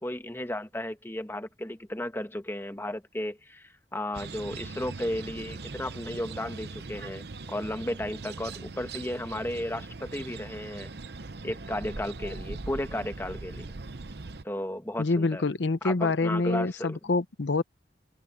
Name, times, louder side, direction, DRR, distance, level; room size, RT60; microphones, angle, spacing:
voice 1, 0.0-10.9 11.4-13.7 14.4-15.5 15.8-17.0, left 1 dB, 15° left, 1.3 m, -34 dB
sound 1, 4.1-14.4, right 3 dB, 60° right, 0.9 m, -40 dB
voice 2, 15.0-17.6, left 3 dB, 80° left, 0.8 m, -26 dB
head